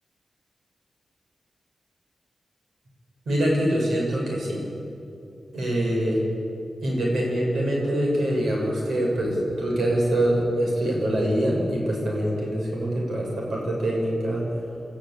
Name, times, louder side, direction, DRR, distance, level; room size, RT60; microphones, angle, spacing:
voice 1, 3.3-4.6 5.5-6.2 6.8-14.4, right 1 dB, 90° right, -2 dB, 7.1 m, -24 dB
28.0 x 13.5 x 8.8 m, 2.8 s
wide cardioid pair, 115°, 0 cm